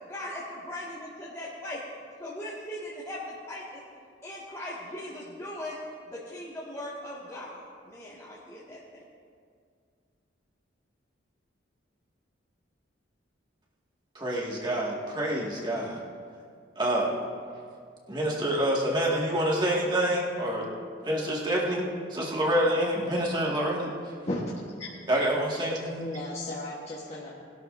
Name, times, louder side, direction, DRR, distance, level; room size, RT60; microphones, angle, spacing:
voice 1, 0.1-1.8 2.2-3.8 4.2-9.0, left 1 dB, 15° left, -8 dB, 1.8 m, -39 dB
voice 2, 14.2-16.0 16.8-17.1 18.1-20.7 21.0-24.1 25.1-26.1, right 1 dB, 25° right, -3 dB, 1.9 m, -27 dB
voice 3, 25.9-27.4, left 1 dB, 35° left, -5 dB, 1.3 m, -35 dB
20.5 x 12.0 x 2.6 m, 2.2 s
head